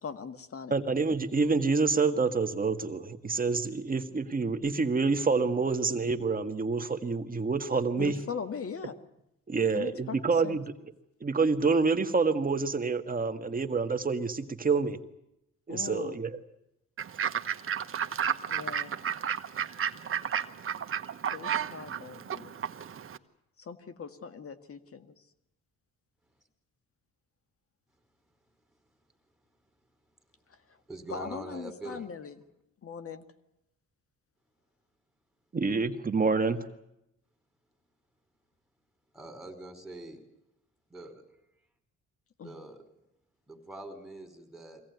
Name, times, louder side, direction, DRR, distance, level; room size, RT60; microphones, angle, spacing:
voice 1, 0.0-0.7 8.0-9.0 9.7-10.2 10.4-10.6 15.7-16.2 18.5-18.9 21.3-22.5 23.6-25.1 30.5-30.6 31.1-32.4 32.8-33.2 42.4-42.6, left 6 dB, 50° left, 10 dB, 1.8 m, -40 dB
voice 2, 0.7-8.1 9.5-10.6 11.2-15.0 15.7-16.4 35.5-36.6, right 4 dB, 30° right, 7 dB, 1.7 m, -27 dB
Fowl / Bird, 17.0-23.2, right 8 dB, 45° right, 1.2 m, -32 dB
voice 3, 30.9-32.1 39.1-40.2 40.9-41.1 42.4-42.8 43.5-44.8, right 2 dB, ahead, 5 dB, 4.7 m, -43 dB
23.5 x 17.0 x 9.5 m, 0.85 s
cardioid pair, 90°, 30 cm